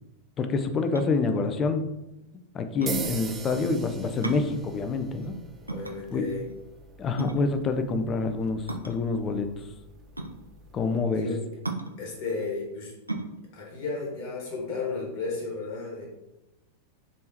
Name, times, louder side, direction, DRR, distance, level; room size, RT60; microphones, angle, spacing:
voice 1, 0.4-1.9 2.5-5.3 6.1-6.3 7.0-9.5 10.7-11.3, left 4 dB, 25° left, 7 dB, 0.5 m, -27 dB
sound 1, 0.9-15.2, right 2 dB, 85° right, 0.4 m, -38 dB
sound 2, 2.9-11.0, right 5 dB, 25° right, 0.5 m, -42 dB
voice 2, 5.7-6.5 11.1-11.4 12.0-12.9 13.5-16.1, left 4 dB, 45° left, -2 dB, 1.2 m, -33 dB
4.1 x 3.7 x 2.8 m, 0.95 s
figure-of-eight pair, 90°, 0 cm